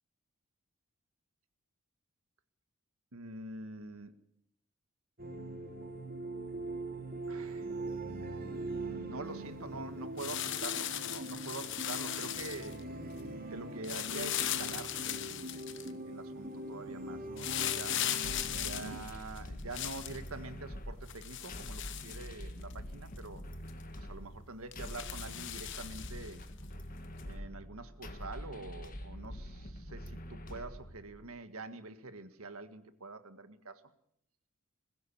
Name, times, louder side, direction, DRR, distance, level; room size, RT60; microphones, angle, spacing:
voice 1, 3.1-4.1 7.3-7.7 9.1-12.9 13.5-18.0 18.5-23.4 24.0-26.4 27.2-33.8, right 3 dB, 75° right, 10 dB, 1.7 m, -46 dB
sound 1, 5.2-19.0, right 2 dB, 40° right, 2.8 m, -42 dB
sound 2, 10.2-12.8 13.8-15.9 17.4-20.2 21.1-22.7 23.2-23.3 23.7-23.8 24.7-26.3 27.2-27.3, left 11 dB, 55° left, 1.1 m, -38 dB
sound 3, 18.2-31.3, equal, 40° left, 1.8 m, -45 dB
20.5 x 15.5 x 8.6 m, 0.73 s
head